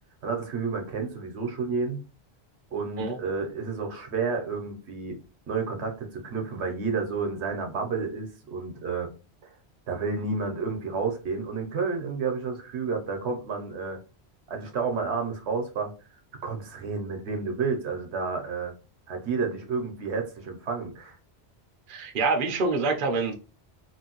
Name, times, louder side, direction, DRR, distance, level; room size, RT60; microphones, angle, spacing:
voice 1, 0.2-2.0 2.7-5.2 5.5-9.1 9.4-9.5 9.9-14.0 14.5-15.9 16.4-18.7 19.1-21.2, right 4 dB, 80° right, 1.0 m, -30 dB
voice 2, 21.9-23.3, right 3 dB, 55° right, 0.7 m, -26 dB
3.0 x 2.6 x 2.9 m
omnidirectional pair, 1.1 m